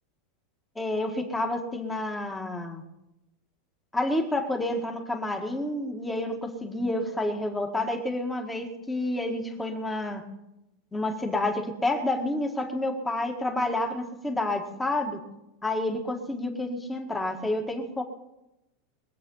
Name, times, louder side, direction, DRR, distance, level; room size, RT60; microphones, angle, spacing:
voice 1, 0.8-2.8 3.9-10.2 10.9-15.2 15.6-18.0, left 1 dB, 5° left, 3 dB, 1.8 m, -29 dB
22.5 x 8.3 x 5.6 m, 0.90 s
supercardioid pair, 155°, 0 cm